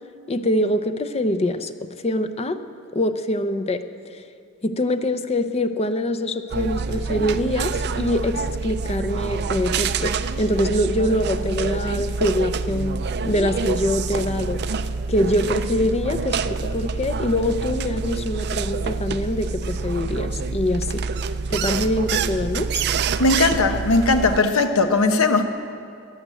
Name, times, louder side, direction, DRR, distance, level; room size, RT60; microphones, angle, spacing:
voice 1, 0.3-1.7 2.0-2.6 2.9-3.8 4.6-10.1 10.4-14.6 15.1-21.1 21.5-22.8, left 1 dB, 30° left, 8 dB, 0.6 m, -24 dB
sound 1, 6.5-24.4, right 4 dB, 50° right, 0.5 m, -26 dB
voice 2, 23.2-25.4, left 3 dB, 80° left, 7 dB, 1.1 m, -18 dB
15.5 x 10.0 x 7.6 m, 2.4 s
head